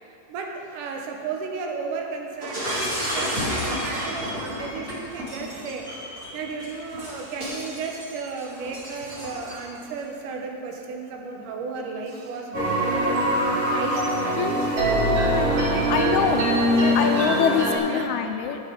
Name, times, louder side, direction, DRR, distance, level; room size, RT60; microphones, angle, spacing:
voice 1, 0.3-5.8 6.3-13.2 13.7-17.2 17.9-18.1, right 4 dB, 85° right, 2 dB, 2.5 m, -34 dB
Shatter, 2.4-9.8, equal, 25° right, 2.5 m, -31 dB
sound 1, 12.5-17.8, equal, 50° right, 3.2 m, -22 dB
voice 2, 14.4-14.8 15.9-16.5 17.0-18.6, left 8 dB, 80° left, 6 dB, 1.9 m, -24 dB
12.0 x 8.3 x 5.0 m, 2.7 s
omnidirectional pair, 3.6 m